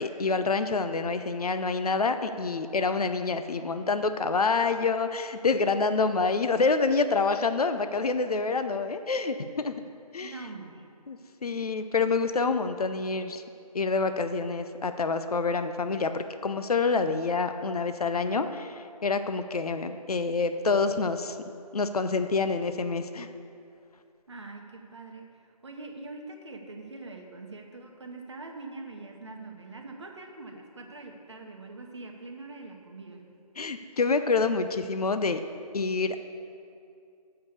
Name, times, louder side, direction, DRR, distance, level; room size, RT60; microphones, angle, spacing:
voice 1, 0.0-9.7 10.1-10.3 11.1-13.4 13.7-21.4 21.7-23.3 33.6-35.4 35.7-36.2, left 4 dB, 70° left, 9 dB, 0.5 m, -27 dB
voice 2, 10.2-10.8 24.3-33.2, right 3 dB, 45° right, 2 dB, 1.0 m, -43 dB
6.7 x 5.4 x 6.9 m, 2.5 s
figure-of-eight pair, 155°, 20 cm